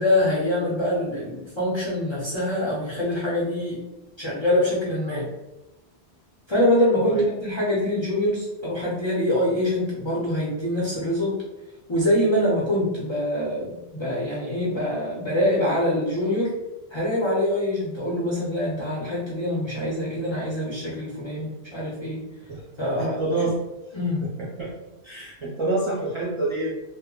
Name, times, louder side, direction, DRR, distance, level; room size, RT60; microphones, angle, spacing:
voice 1, 0.0-3.8 4.2-5.3 6.5-11.4 11.9-16.5 16.9-22.3 22.8-23.5 23.9-24.3, left 1 dB, 35° left, -6 dB, 0.6 m, -24 dB
voice 2, 23.0-23.6 24.6-24.7 25.0-26.8, right 2 dB, 35° right, -7 dB, 0.6 m, -26 dB
2.1 x 2.0 x 3.7 m, 0.99 s
omnidirectional pair, 1.1 m